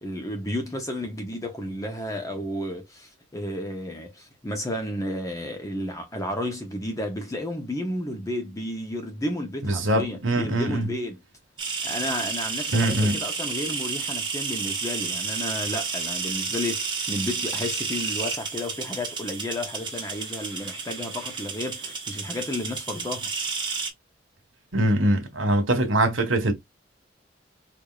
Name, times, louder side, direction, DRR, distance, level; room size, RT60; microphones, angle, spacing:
voice 1, 0.0-11.2 11.8-23.3, left 1 dB, 15° left, 0.8 m, -32 dB
voice 2, 9.6-10.9 12.7-13.2 24.7-26.5, right 1 dB, 85° right, 1.5 m, -23 dB
sound 1, 11.6-23.9, right 5 dB, 25° right, 1.4 m, -31 dB
4.8 x 2.6 x 2.4 m
head